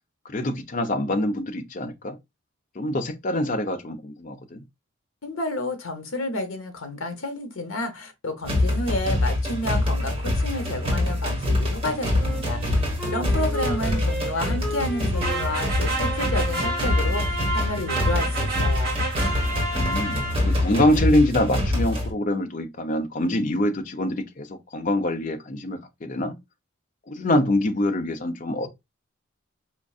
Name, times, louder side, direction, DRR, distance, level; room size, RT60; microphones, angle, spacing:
voice 1, 0.3-2.2 2.8-4.6 19.7-26.3 27.1-28.7, left 1 dB, 40° left, 0.6 m, -25 dB
voice 2, 5.2-12.8 13.1-19.0, left 1 dB, 75° left, 0.9 m, -30 dB
sound 1, 8.4-22.1, left 1 dB, 25° right, 1.4 m, -25 dB
Wind instrument woodwind instrument, 12.2-16.9, equal, ahead, 1.6 m, -35 dB
sound 2, 15.2-20.7, right 2 dB, 50° right, 1.3 m, -30 dB
4.5 x 2.6 x 2.3 m
head